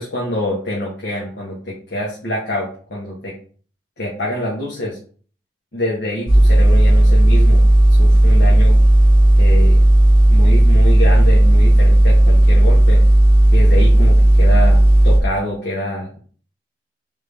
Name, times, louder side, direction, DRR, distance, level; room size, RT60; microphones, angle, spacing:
voice 1, 0.0-3.3 4.0-5.0 5.7-7.6 8.0-8.7 9.4-9.8 10.3-13.0 13.5-16.2, left 1 dB, 75° left, -5 dB, 1.3 m, -25 dB
sound 1, 6.3-15.2, right 1 dB, 25° left, 1.2 m, -11 dB
3.7 x 3.5 x 3.4 m, 0.43 s
head